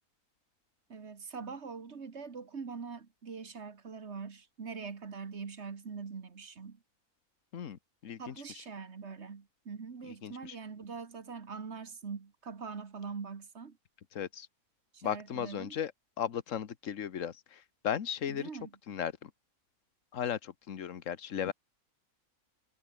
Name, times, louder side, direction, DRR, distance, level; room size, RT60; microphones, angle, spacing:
voice 1, 0.9-6.8 8.2-13.8 14.9-15.8 18.3-18.7, right 5 dB, 50° right, 1.7 m, -43 dB
voice 2, 7.5-8.3 10.1-10.6 14.1-14.5 15.0-15.9 16.2-18.5 18.9-19.3 20.1-21.5, left 9 dB, 60° left, 1.5 m, -36 dB
omnidirectional pair, 1.6 m